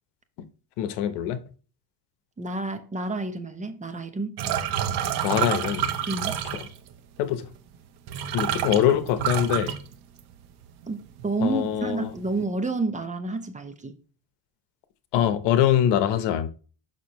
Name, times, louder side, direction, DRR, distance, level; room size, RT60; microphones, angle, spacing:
voice 1, 0.8-1.4 5.2-5.9 7.2-7.5 8.3-9.8 11.4-12.1 15.1-16.5, left 10 dB, 80° left, 1.0 m, -23 dB
voice 2, 2.4-4.4 6.1-6.4 10.9-13.9, right 2 dB, 20° right, 0.9 m, -29 dB
sound 1, 4.4-6.9 7.7-7.8 8.1-10.5 10.8-11.3 11.6-12.3, right 10 dB, 65° right, 1.1 m, -28 dB
6.7 x 6.0 x 3.1 m
cardioid pair, 120°, 41 cm